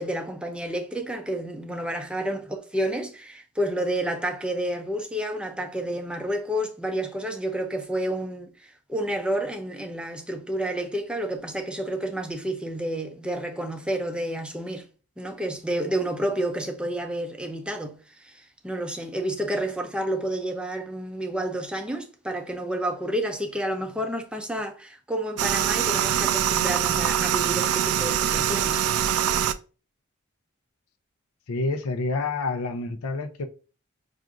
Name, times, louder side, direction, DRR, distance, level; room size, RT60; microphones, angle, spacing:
voice 1, 0.0-8.5 8.9-14.9 15.2-28.9, right 1 dB, 5° right, 0.4 m, -30 dB
sound 1, 25.4-29.5, right 10 dB, 85° right, 0.3 m, -24 dB
voice 2, 31.5-33.4, left 3 dB, 90° left, 0.6 m, -28 dB
5.8 x 2.5 x 2.5 m
head